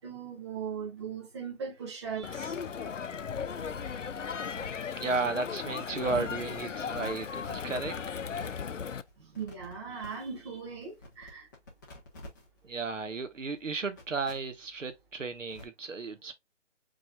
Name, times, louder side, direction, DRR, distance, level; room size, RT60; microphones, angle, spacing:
voice 1, 0.0-2.6 9.3-11.5, right 6 dB, 20° right, 1.4 m, -39 dB
sound 1, 2.0-15.6, left 1 dB, 15° left, 1.0 m, -54 dB
Crowd, 2.2-9.0, left 6 dB, 75° left, 0.7 m, -36 dB
voice 2, 5.0-8.1 12.6-16.3, right 4 dB, 75° right, 1.2 m, -34 dB
4.9 x 4.1 x 2.3 m
figure-of-eight pair, 160°, 38 cm